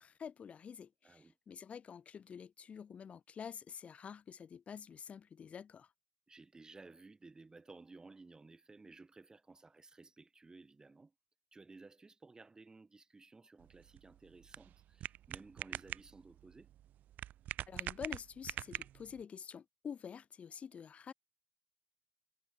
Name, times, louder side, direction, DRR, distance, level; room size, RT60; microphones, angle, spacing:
voice 1, 0.0-5.9 17.7-21.1, left 7 dB, 40° left, 0.9 m, -48 dB
voice 2, 1.0-1.3 6.3-11.1 11.5-16.7, right 3 dB, 20° right, 3.4 m, -57 dB
sound 1, 13.6-19.2, right 12 dB, 55° right, 0.8 m, -45 dB
figure-of-eight pair, 55°, 3 cm